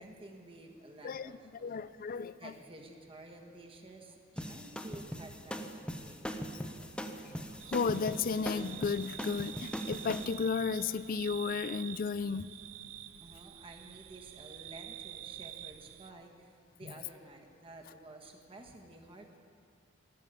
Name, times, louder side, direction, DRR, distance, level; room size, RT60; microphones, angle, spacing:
voice 1, 0.0-1.8 2.4-6.8 13.2-19.4, right 2 dB, 30° right, 2 dB, 1.4 m, -52 dB
voice 2, 1.6-2.5 7.3-7.4 7.7-12.5 16.8-16.9, left 5 dB, 45° left, 16 dB, 0.4 m, -34 dB
sound 1, 4.4-10.2, equal, 5° left, 0.8 m, -40 dB
sound 2, 7.6-16.1, right 13 dB, 90° right, 0.5 m, -47 dB
13.0 x 12.5 x 8.2 m, 2.2 s
head